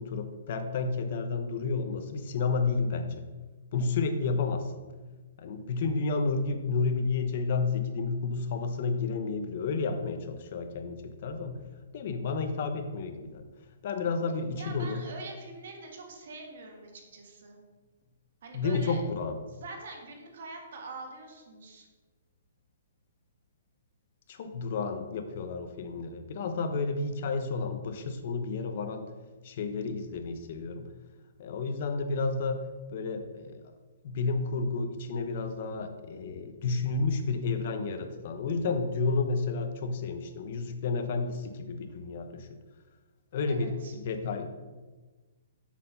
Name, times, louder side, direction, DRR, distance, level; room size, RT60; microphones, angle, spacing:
voice 1, 0.0-3.3 3.7-4.7 5.4-11.6 11.9-13.4 13.8-15.0 18.5-19.4 24.3-29.1 29.4-30.9 31.4-32.6 32.9-33.6 34.0-42.5 43.3-44.5, left 4 dB, 45° left, 7 dB, 0.8 m, -31 dB
voice 2, 14.6-17.6 18.4-19.0 19.6-21.9 43.5-43.9, right 3 dB, 55° right, 2 dB, 1.6 m, -44 dB
7.1 x 4.5 x 5.7 m, 1.3 s
hypercardioid pair, 170°, 0 cm